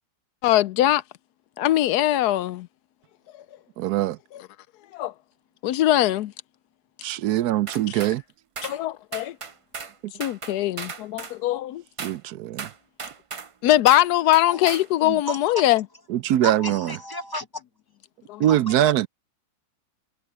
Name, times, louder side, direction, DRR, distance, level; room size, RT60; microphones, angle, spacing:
voice 1, 0.4-1.0 1.6-2.7 4.3-4.4 4.9-5.1 5.6-6.3 8.6-9.4 10.2-11.8 13.6-15.8 18.3-18.4, left 14 dB, 80° left, 1.1 m, -21 dB
voice 2, 3.8-4.2 7.0-8.2 12.0-12.7 15.0-15.2 16.1-16.8 18.4-19.1, right 13 dB, 80° right, 1.1 m, -22 dB
sound 1, 7.7-8.2 8.6-8.8 9.1-9.9 10.2-11.4 12.0-12.2 12.6-13.5 13.9-14.1 14.3-14.9, right 5 dB, 55° right, 0.3 m, -36 dB
voice 3, 15.3-15.6 16.4-17.6 18.5-18.7, equal, 15° left, 1.3 m, -32 dB
omnidirectional pair, 1.7 m